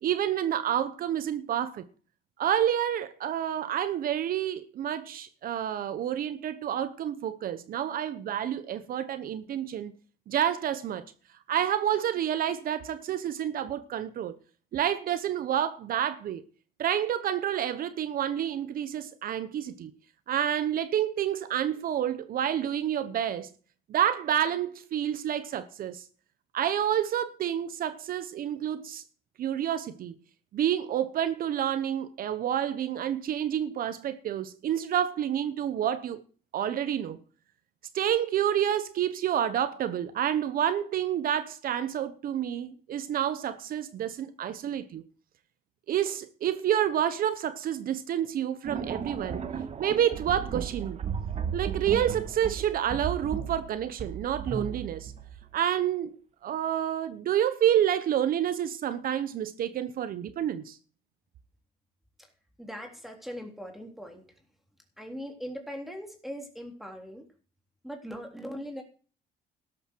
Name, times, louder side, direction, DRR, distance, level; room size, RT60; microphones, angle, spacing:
voice 1, 0.0-1.8 2.4-9.9 10.3-11.0 11.5-14.4 14.7-16.4 16.8-19.9 20.3-23.5 23.9-26.0 26.5-29.0 29.4-30.2 30.5-36.2 36.5-37.2 37.9-45.0 45.9-49.5 49.8-51.0 51.5-55.1 55.5-56.1 56.4-60.8, right 10 dB, 60° right, 1.1 m, -29 dB
sound 1, 48.6-55.6, right 7 dB, 40° right, 1.9 m, -35 dB
voice 2, 62.6-64.2 65.0-67.2 67.8-68.8, equal, ahead, 3.5 m, -40 dB
13.0 x 11.5 x 4.6 m
cardioid pair, 110°, 17 cm